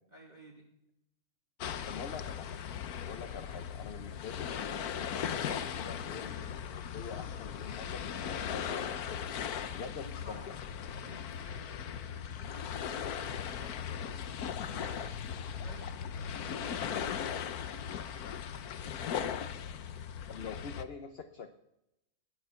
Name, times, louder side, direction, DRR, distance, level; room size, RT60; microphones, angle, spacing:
voice 1, 0.1-0.7 4.0-4.2 10.0-17.3, right 1 dB, 30° right, -2 dB, 2.6 m, -54 dB
sound 1, 1.6-20.8, left 8 dB, 80° left, 1.4 m, -38 dB
voice 2, 1.9-2.6 3.0-4.5 5.0-9.2 9.7-10.4 20.3-21.5, left 5 dB, 45° left, 7 dB, 1.1 m, -45 dB
19.0 x 11.5 x 5.8 m, 0.87 s
omnidirectional pair, 1.6 m